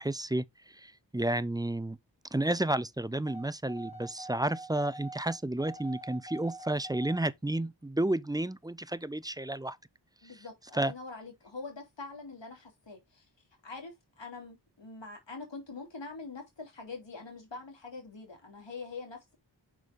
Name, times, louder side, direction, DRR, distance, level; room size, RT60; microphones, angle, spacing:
voice 1, 0.0-2.0 2.3-9.8 10.7-10.9, right 1 dB, 10° right, 0.5 m, -31 dB
sound 1, 3.3-7.2, right 2 dB, 55° left, 2.8 m, -45 dB
voice 2, 10.2-13.3 13.6-19.4, left 4 dB, 80° left, 3.0 m, -44 dB
6.1 x 5.4 x 3.5 m
cardioid pair, 40°, 43 cm